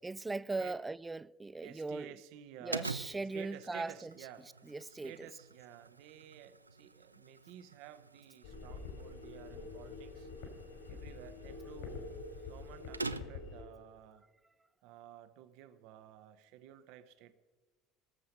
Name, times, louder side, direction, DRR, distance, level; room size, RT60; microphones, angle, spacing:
voice 1, 0.0-2.2 2.6-4.1 4.6-5.3, right 3 dB, 15° right, 0.3 m, -39 dB
voice 2, 1.6-3.0 3.3-10.3 10.9-11.9 12.4-14.3 14.8-17.3, right 11 dB, 55° right, 0.7 m, -53 dB
sound 1, 2.7-13.6, right 3 dB, 85° right, 0.4 m, -47 dB
sound 2, 8.4-13.6, left 4 dB, 60° left, 3.3 m, -46 dB
18.5 x 7.6 x 5.5 m
figure-of-eight pair, 65°, 0 cm